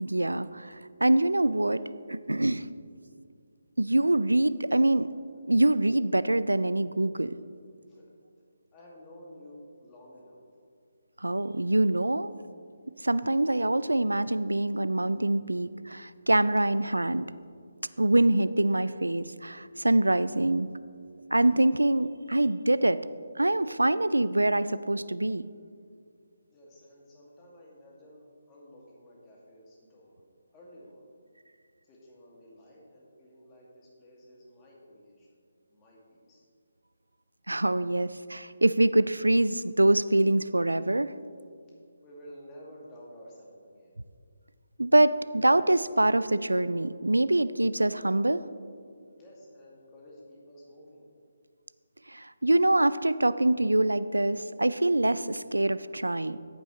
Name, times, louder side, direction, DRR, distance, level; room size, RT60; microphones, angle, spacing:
voice 1, 0.0-1.8 2.1-2.7 3.8-5.1 5.5-7.4 11.2-12.3 13.0-17.3 18.0-20.7 21.3-23.0 23.4-25.5 37.5-41.1 44.8-48.5 52.1-56.4, right 1 dB, 85° right, 16 dB, 0.3 m, -25 dB
voice 2, 8.7-10.4 26.5-30.2 30.5-31.2 31.8-35.3 35.7-36.5 42.0-44.0 49.2-51.1, equal, 20° left, -4 dB, 2.2 m, -52 dB
14.0 x 8.2 x 3.2 m, 2.3 s
figure-of-eight pair, 145°, 0 cm